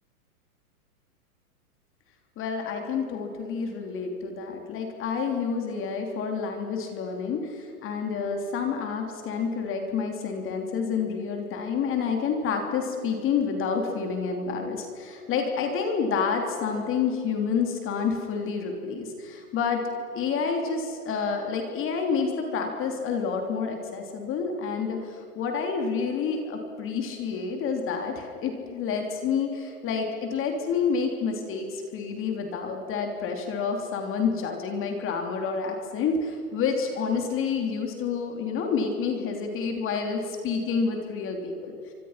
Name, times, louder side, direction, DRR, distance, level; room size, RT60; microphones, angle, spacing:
voice 1, 2.4-19.8 20.1-41.9, left 5 dB, 25° left, 3 dB, 3.3 m, -29 dB
29.5 x 24.5 x 5.9 m, 2.5 s
hypercardioid pair, 135°, 46 cm